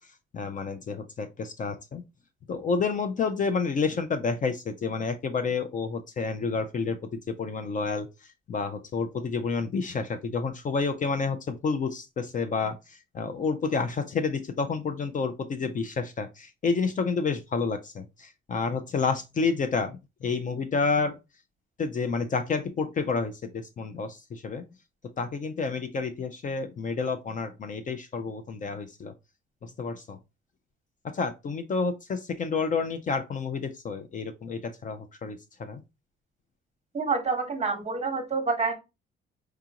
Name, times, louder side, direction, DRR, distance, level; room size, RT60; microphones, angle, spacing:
voice 1, 0.3-2.0 2.5-7.0 7.3-8.1 8.5-21.2 21.8-24.6 25.2-29.1 29.6-30.2 31.1-35.8, left 4 dB, 40° left, 0.5 m, -29 dB
voice 2, 36.9-38.7, right 4 dB, 30° right, 1.0 m, -27 dB
4.7 x 2.4 x 2.8 m
cardioid pair, 120°, 21 cm